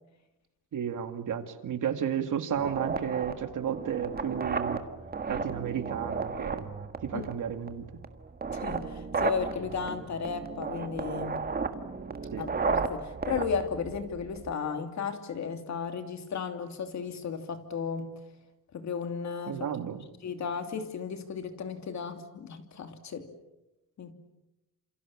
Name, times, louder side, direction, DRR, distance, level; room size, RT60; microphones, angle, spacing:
voice 1, 0.7-4.8 5.3-6.7 7.0-7.9 12.3-12.5 19.5-20.0, right 8 dB, 55° right, 8 dB, 2.3 m, -32 dB
sound 1, 2.5-14.5, right 4 dB, 25° right, 1.6 m, -34 dB
voice 2, 8.5-11.4 12.4-18.2 18.7-19.6 20.2-23.3 24.0-24.1, left 6 dB, 50° left, 7 dB, 2.8 m, -34 dB
29.0 x 28.0 x 7.3 m, 0.96 s
wide cardioid pair, 175°, 36 cm